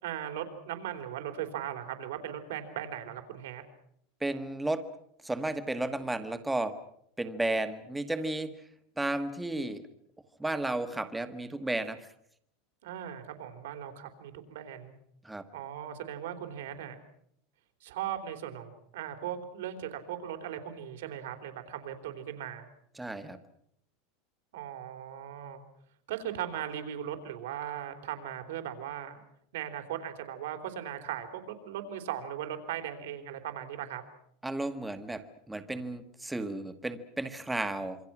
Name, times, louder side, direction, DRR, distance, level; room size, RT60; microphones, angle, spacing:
voice 1, 0.0-3.6 12.8-14.9 15.5-17.0 17.8-22.7 24.5-25.6 26.1-29.2 29.5-34.0, right 10 dB, 85° right, 7 dB, 3.7 m, -38 dB
voice 2, 4.2-4.8 5.2-6.7 7.2-8.5 9.0-9.8 10.4-12.0 15.2-15.4 23.0-23.4 34.4-38.0, right 2 dB, 5° right, 9 dB, 1.4 m, -33 dB
27.0 x 24.5 x 6.0 m, 0.72 s
supercardioid pair, 165°, 0 cm